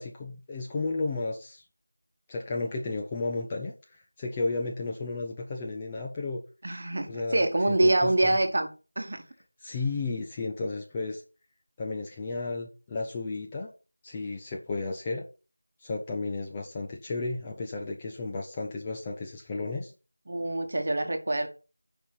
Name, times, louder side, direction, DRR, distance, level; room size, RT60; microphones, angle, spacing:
voice 1, 0.0-1.6 2.3-6.4 7.1-8.4 9.6-11.2 11.8-13.7 14.0-15.2 15.8-19.9, left 3 dB, 10° left, 0 dB, 0.5 m, -33 dB
voice 2, 6.6-8.7 9.0-9.2 20.3-21.5, right 1 dB, 35° right, 7 dB, 1.2 m, -25 dB
8.6 x 5.2 x 5.6 m, 0.34 s
figure-of-eight pair, 175°, 0 cm